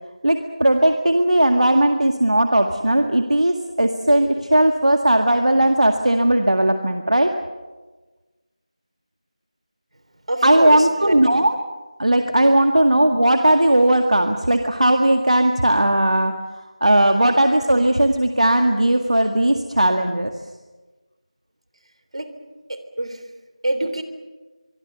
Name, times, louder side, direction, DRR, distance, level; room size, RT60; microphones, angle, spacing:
voice 1, 0.2-7.3 10.4-11.6 12.0-16.3 16.8-20.3, right 1 dB, 75° right, 5 dB, 1.9 m, -17 dB
voice 2, 10.3-11.1 22.1-22.3 23.0-23.2 23.6-24.0, right 1 dB, 60° right, 9 dB, 3.4 m, -24 dB
24.0 x 24.0 x 7.0 m, 1.2 s
figure-of-eight pair, 170°, 4 cm